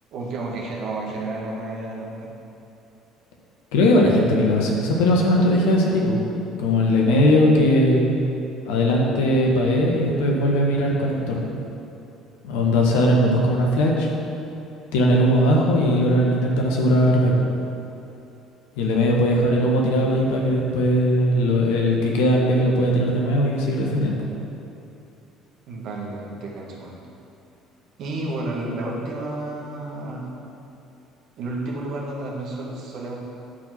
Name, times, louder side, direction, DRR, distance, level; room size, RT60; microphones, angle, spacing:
voice 1, 0.1-2.3 25.7-27.0 28.0-30.3 31.4-33.2, right 2 dB, 60° right, -3 dB, 1.8 m, -31 dB
voice 2, 3.7-6.2 6.6-8.1 8.6-11.4 12.4-14.1 14.9-17.5 18.8-24.3, equal, 70° left, -1 dB, 1.3 m, -19 dB
10.5 x 4.7 x 5.9 m, 2.8 s
figure-of-eight pair, 55°, 0 cm